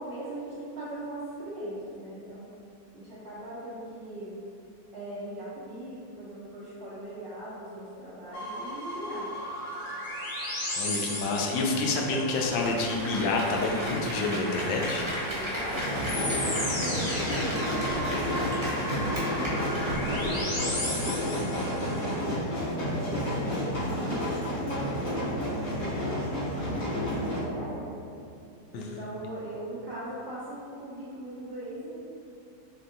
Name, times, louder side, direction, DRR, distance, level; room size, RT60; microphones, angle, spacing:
voice 1, 0.0-2.5 2.9-4.4 4.9-9.3 15.2-17.0 17.4-22.2 22.8-23.6 23.8-28.0 28.7-32.0, right 1 dB, 65° right, -10 dB, 0.6 m, -40 dB
sound 1, 8.3-22.1, left 1 dB, 45° left, 0.7 m, -36 dB
voice 2, 10.8-15.1 28.7-28.8, left 3 dB, 90° left, 0 dB, 1.3 m, -28 dB
Applause, 12.4-20.6 20.9-21.0, equal, 25° right, 0.7 m, -35 dB
sound 2, 15.7-27.4, equal, 75° left, 2.2 m, -30 dB
4.4 x 3.3 x 2.6 m, 2.6 s
omnidirectional pair, 2.0 m